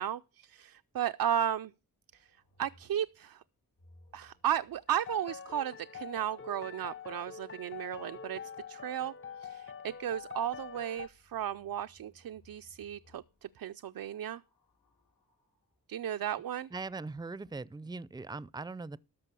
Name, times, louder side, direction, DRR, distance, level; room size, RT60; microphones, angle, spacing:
voice 1, 0.0-1.7 2.1-2.3 2.6-3.4 4.1-8.4 8.7-14.4 15.9-16.7, right 10 dB, 75° right, 0.5 m, -35 dB
sound 1, 2.1-6.7 9.7-15.8 16.8-17.4, left 1 dB, 90° left, 5.1 m, -66 dB
sound 2, 4.9-11.1, left 7 dB, 35° left, 0.6 m, -45 dB
voice 2, 16.7-19.0, right 3 dB, 10° right, 0.5 m, -40 dB
13.0 x 5.3 x 6.8 m
cardioid pair, 50°, 35 cm